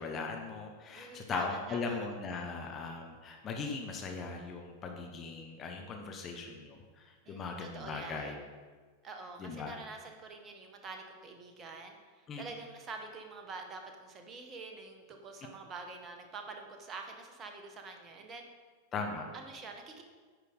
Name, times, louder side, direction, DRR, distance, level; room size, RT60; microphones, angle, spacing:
voice 1, 0.0-8.4 9.4-9.8 12.3-12.4 18.9-19.3, left 4 dB, 25° left, 2 dB, 0.9 m, -39 dB
voice 2, 0.9-2.1 7.2-8.4 9.0-18.5 19.3-20.0, right 3 dB, 25° right, 4 dB, 1.0 m, -46 dB
9.5 x 4.9 x 4.0 m, 1.5 s
figure-of-eight pair, 90°, 0 cm